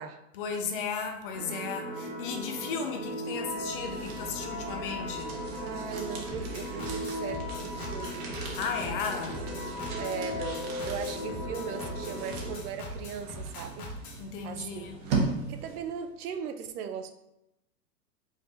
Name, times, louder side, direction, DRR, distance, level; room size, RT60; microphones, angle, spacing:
voice 1, 0.3-5.4 8.6-9.4 14.2-15.0, left 5 dB, 35° left, 4 dB, 0.5 m, -35 dB
sound 1, 1.3-12.6, equal, 20° right, 1.2 m, -37 dB
sound 2, 3.5-16.0, right 3 dB, 40° right, 1.0 m, -39 dB
voice 2, 5.6-8.3 9.5-9.6 10.0-13.9 14.4-14.9 15.5-17.1, right 7 dB, 65° right, 8 dB, 0.7 m, -38 dB
sound 3, 6.3-14.2, left 1 dB, 60° left, 1.3 m, -42 dB
5.0 x 3.5 x 2.6 m, 0.88 s
hypercardioid pair, 140°, 48 cm